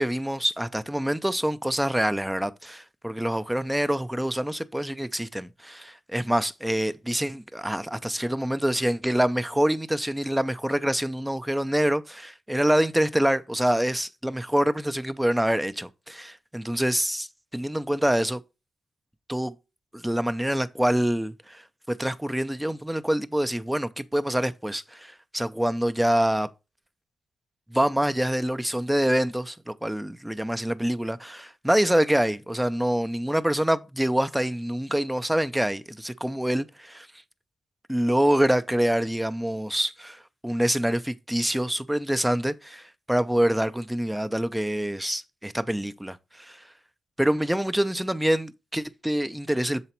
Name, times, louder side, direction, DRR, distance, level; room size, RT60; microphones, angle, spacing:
voice 1, 0.0-18.4 19.3-19.5 19.9-21.6 21.9-26.5 27.7-37.1 37.9-46.7 47.2-49.8, right 1 dB, 5° right, 0.4 m, -26 dB
6.8 x 4.0 x 4.3 m
wide cardioid pair, 140°, 0 cm